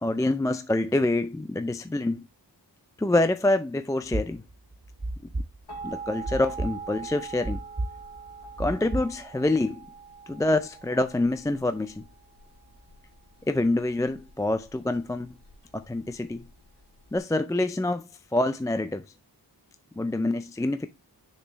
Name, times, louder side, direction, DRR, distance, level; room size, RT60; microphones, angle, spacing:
voice 1, 0.0-2.3 3.0-4.4 5.8-7.6 8.6-9.9 10.3-12.0 13.5-15.3 15.7-16.5 17.1-19.0 20.0-20.9, left 2 dB, 10° left, 0.3 m, -26 dB
sound 1, 4.1-9.2, right 2 dB, 30° right, 1.8 m, -32 dB
sound 2, 5.7-17.2, right 5 dB, 65° left, 2.8 m, -43 dB
6.6 x 5.2 x 2.9 m
wide cardioid pair, 105°, 42 cm